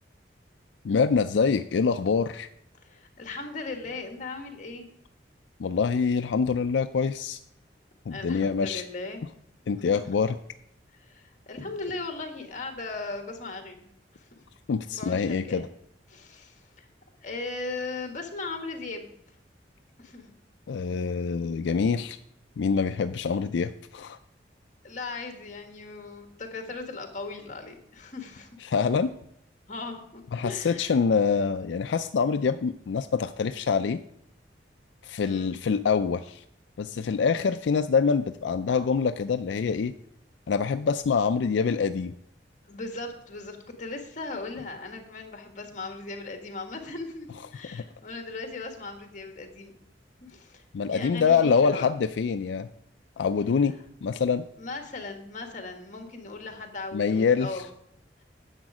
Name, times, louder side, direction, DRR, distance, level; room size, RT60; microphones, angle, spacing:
voice 1, 0.8-2.5 5.6-7.4 8.1-8.8 9.7-10.4 14.7-15.7 20.7-22.2 22.6-24.2 28.6-29.1 30.3-34.0 35.0-36.4 36.8-39.9 40.5-42.1 47.7-47.8 50.7-52.7 53.2-53.7 54.0-54.4 56.9-57.6, left 5 dB, 85° left, 10 dB, 0.4 m, -25 dB
voice 2, 2.8-4.9 8.1-9.2 10.9-13.8 14.1-14.3 14.9-15.6 16.1-16.9 17.2-19.2 20.0-20.3 24.8-28.5 29.7-30.9 35.2-35.5 42.7-49.7 50.2-50.6 50.9-51.9 54.6-57.6, left 3 dB, 45° left, 5 dB, 1.5 m, -38 dB
10.0 x 7.3 x 4.9 m, 0.73 s
head